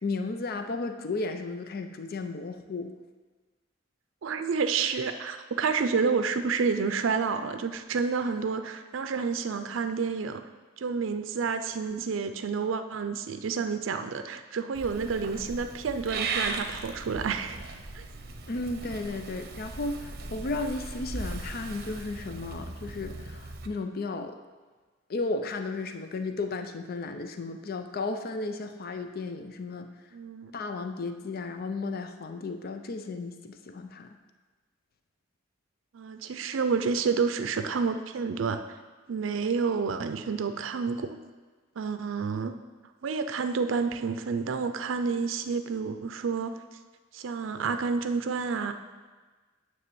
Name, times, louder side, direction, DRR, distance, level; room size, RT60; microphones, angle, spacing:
voice 1, 0.0-3.0 18.5-24.4 25.1-29.9 30.5-34.1, left 3 dB, 50° left, 7 dB, 0.5 m, -34 dB
voice 2, 4.2-10.4 10.8-17.6 17.9-18.0 30.1-30.5 35.9-38.6 39.1-41.2 41.8-42.6 43.0-46.5 47.1-48.7, right 5 dB, 90° right, 9 dB, 0.4 m, -29 dB
Purr / Meow, 14.7-23.7, right 3 dB, 55° right, 0.7 m, -38 dB
9.5 x 3.3 x 6.9 m, 1.3 s
head